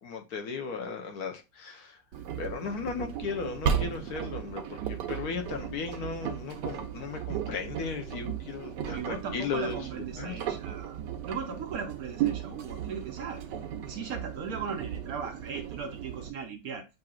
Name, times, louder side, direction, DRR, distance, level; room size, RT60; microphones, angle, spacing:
voice 1, 0.0-2.0 2.4-9.8 10.2-10.4, left 5 dB, 65° left, 1.2 m, -36 dB
Engine, 2.1-16.3, right 9 dB, 80° right, 1.3 m, -35 dB
voice 2, 8.6-13.4 13.8-16.9, right 6 dB, 65° right, 1.0 m, -38 dB
7.6 x 2.7 x 2.3 m
omnidirectional pair, 1.9 m